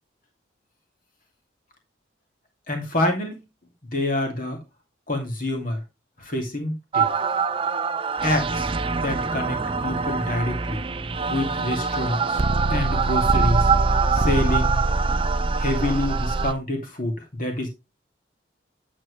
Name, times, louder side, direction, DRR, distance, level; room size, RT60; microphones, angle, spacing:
voice 1, 2.7-3.4 3.9-4.6 5.1-5.8 6.3-7.1 8.2-8.6 9.0-9.6 9.8-10.8 11.3-12.4 12.7-13.7 14.1-14.8 15.6-17.7, left 1 dB, 45° left, 2.6 m, -26 dB
sound 1, 6.9-16.5, right 4 dB, 25° right, 0.5 m, -23 dB
9.2 x 7.6 x 3.2 m
head